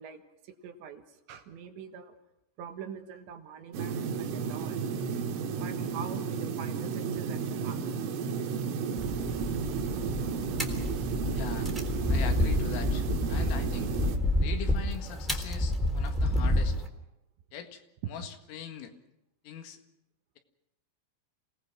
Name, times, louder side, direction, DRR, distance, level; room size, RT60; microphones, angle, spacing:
voice 1, 0.0-2.2 2.6-4.9 5.6-8.3 18.0-18.1, right 7 dB, 70° right, 6 dB, 3.5 m, -44 dB
sound 1, 3.7-14.2, right 6 dB, 85° right, 4.0 m, -33 dB
sound 2, 9.0-16.9, left 1 dB, ahead, 2.4 m, -29 dB
voice 2, 11.3-11.7 12.1-14.0 14.4-16.8 17.5-17.8 18.1-18.9 19.4-19.8, left 8 dB, 80° left, 6 dB, 4.4 m, -41 dB
28.5 x 18.5 x 6.1 m, 0.85 s
omnidirectional pair, 5.8 m